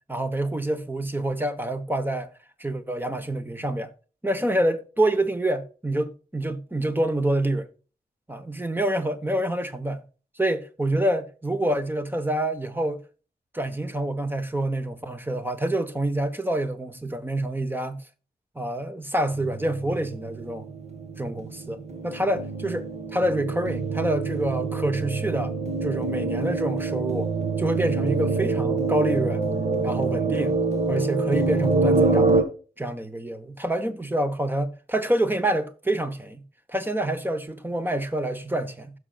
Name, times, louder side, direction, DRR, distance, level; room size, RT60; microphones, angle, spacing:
voice 1, 0.1-2.3 2.6-3.9 4.2-7.7 8.3-10.0 10.4-13.0 13.5-18.0 18.5-20.7 21.2-25.5 25.8-27.3 27.6-29.4 29.8-30.6 30.9-32.4 32.8-36.4 36.7-38.9, right 1 dB, 10° right, 1.1 m, -27 dB
sound 1, 19.3-32.4, right 3 dB, 40° right, 1.8 m, -26 dB
15.5 x 6.4 x 2.4 m
wide cardioid pair, 125°, 17 cm